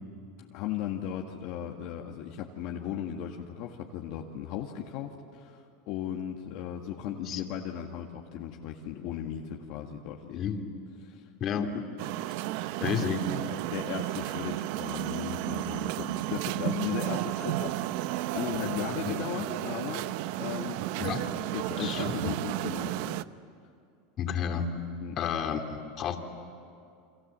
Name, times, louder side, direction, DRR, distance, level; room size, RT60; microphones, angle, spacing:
voice 1, 0.5-10.4 11.0-11.2 11.6-11.7 12.8-20.1 20.4-21.2 21.5-23.2 25.0-25.2, left 9 dB, 60° left, 1 dB, 1.8 m, -37 dB
voice 2, 10.3-10.6 11.4-11.8 12.8-13.2 19.0-19.2 21.0-21.3 21.8-22.3 24.2-24.7 25.2-26.2, left 7 dB, 40° left, 4 dB, 2.6 m, -31 dB
sound 1, 12.0-23.2, right 16 dB, 65° right, 0.6 m, -33 dB
30.0 x 25.0 x 7.6 m, 2.5 s
supercardioid pair, 125°, 0 cm